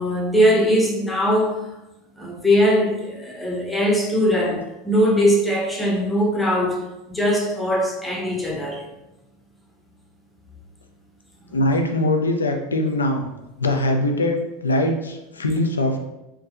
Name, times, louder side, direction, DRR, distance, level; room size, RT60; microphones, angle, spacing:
voice 1, 0.0-1.7 2.2-8.8, equal, 10° left, 0.7 m, -20 dB
voice 2, 11.5-13.3 13.6-16.0, left 1 dB, 90° left, 0.4 m, -22 dB
3.4 x 2.8 x 2.4 m
hypercardioid pair, 85°, 0 cm